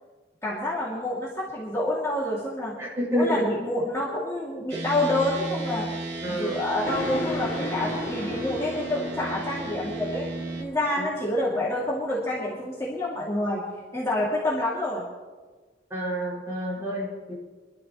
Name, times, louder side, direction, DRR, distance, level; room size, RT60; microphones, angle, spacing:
voice 1, 0.4-2.8 3.1-5.9 6.3-10.3 10.6-13.6 13.9-15.1 16.8-16.9, left 1 dB, 15° left, -7 dB, 2.5 m, -28 dB
voice 2, 2.8-3.5 6.2-6.6 11.0-11.1 15.9-17.3, equal, 15° right, -6 dB, 5.9 m, -28 dB
sound 1, 4.7-10.6, right 2 dB, 80° right, 2.7 m, -34 dB
sound 2, 6.8-13.5, left 2 dB, 70° left, 2.9 m, -36 dB
24.5 x 12.5 x 3.1 m, 1.4 s
head